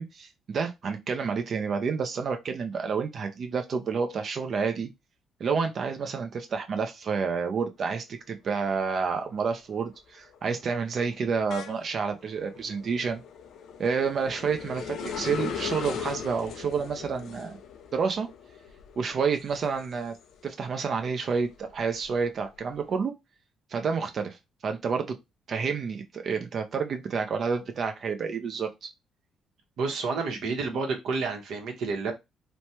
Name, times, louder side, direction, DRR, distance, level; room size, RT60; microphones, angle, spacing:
voice 1, 0.0-4.9 5.4-13.2 13.8-17.6 17.9-18.3 19.0-20.1 20.4-23.1 23.7-24.4 24.6-25.2 25.5-28.9, right 5 dB, 50° right, 0.5 m, -29 dB
sound 1, 8.6-9.0 9.4-20.6 21.0-22.8, left 7 dB, 70° left, 0.4 m, -40 dB
voice 2, 29.8-32.1, right 4 dB, 70° right, 0.9 m, -30 dB
3.1 x 2.1 x 2.7 m
cardioid pair, 100°, 0 cm